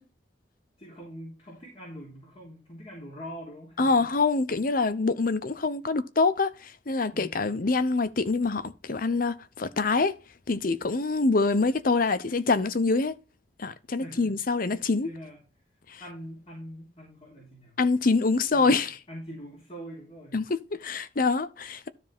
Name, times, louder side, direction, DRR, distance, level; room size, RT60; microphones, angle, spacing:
voice 1, 0.8-4.1 7.1-7.6 14.0-14.4 14.7-15.4 16.0-17.8 18.5-18.8 19.1-20.4, equal, 30° left, 3.5 m, -43 dB
voice 2, 3.8-10.2 10.5-13.1 13.6-15.1 15.9-16.0 17.8-18.9 20.3-21.9, left 3 dB, 50° left, 0.7 m, -25 dB
13.0 x 4.8 x 3.5 m
head